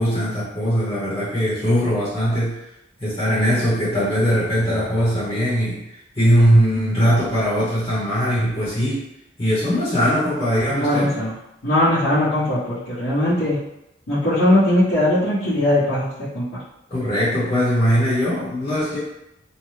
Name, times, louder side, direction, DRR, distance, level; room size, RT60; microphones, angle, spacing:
voice 1, 0.0-2.6 3.0-9.0 9.4-11.1 16.9-19.0, equal, 30° left, -9 dB, 0.9 m, -20 dB
voice 2, 10.7-11.3 11.6-13.6 14.1-16.4, left 1 dB, 80° left, -14 dB, 1.1 m, -19 dB
2.7 x 2.1 x 3.2 m, 0.85 s
head